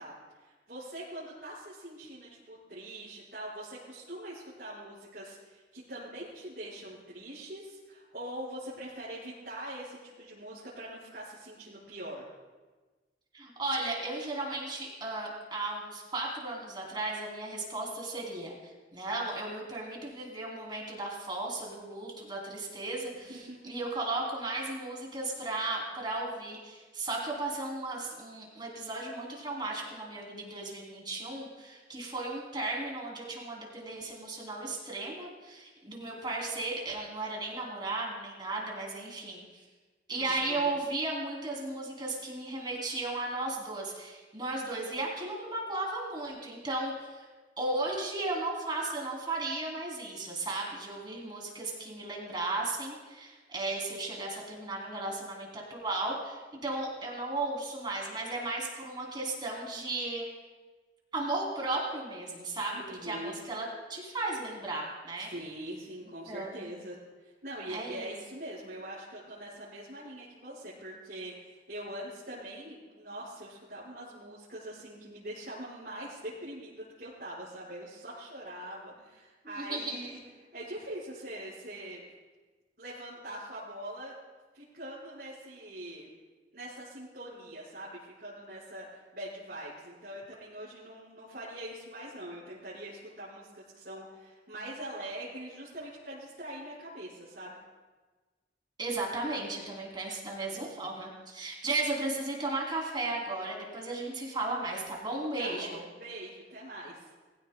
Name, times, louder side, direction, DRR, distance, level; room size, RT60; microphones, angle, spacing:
voice 1, 0.0-12.2 23.1-23.6 40.2-40.7 62.9-63.4 65.3-80.2 80.5-82.1 82.8-84.1 84.5-86.1 86.5-97.6 100.5-100.8 105.4-107.0, right 1 dB, 55° right, -10 dB, 4.8 m, -43 dB
voice 2, 13.3-39.6 40.1-47.3 47.6-60.2 61.1-65.3 66.3-66.7 67.7-68.1 79.6-80.0 98.8-105.8, right 2 dB, 25° right, -2 dB, 2.9 m, -35 dB
20.5 x 16.0 x 2.2 m, 1.3 s
head